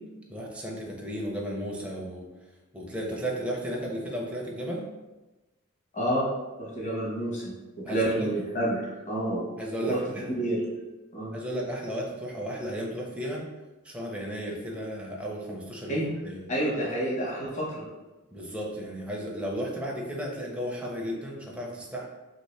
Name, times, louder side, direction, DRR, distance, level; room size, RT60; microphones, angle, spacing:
voice 1, 0.3-2.3 2.7-4.8 7.8-8.3 9.6-10.4 11.3-13.5 13.8-16.5 18.3-22.1, equal, 5° right, -2 dB, 0.5 m, -34 dB
voice 2, 6.6-7.4 7.8-9.4 9.8-10.6 11.1-11.3 15.9-16.1 16.5-17.9, right 1 dB, 35° left, -5 dB, 1.0 m, -29 dB
2.9 x 2.8 x 3.1 m, 1.1 s
head